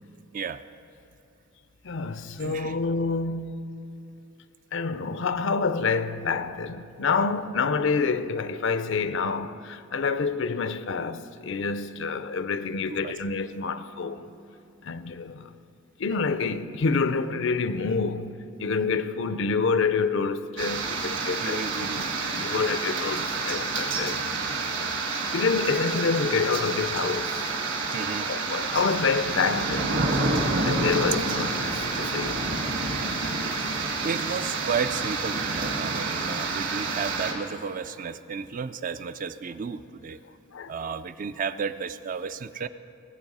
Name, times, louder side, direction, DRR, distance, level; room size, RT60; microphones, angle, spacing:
voice 1, 1.8-3.7 4.7-14.3 14.8-15.5 16.0-24.3 25.3-27.4 28.3-30.2 30.6-32.7 40.5-40.9, left 4 dB, 60° left, 0.5 m, -28 dB
voice 2, 2.4-2.8 13.0-13.1 21.4-22.0 27.9-28.3 33.3-33.7 34.0-40.2 40.7-42.7, right 6 dB, 40° right, 0.3 m, -33 dB
sound 1, 20.6-37.3, right 3 dB, 60° right, 1.8 m, -28 dB
19.5 x 7.2 x 5.4 m
head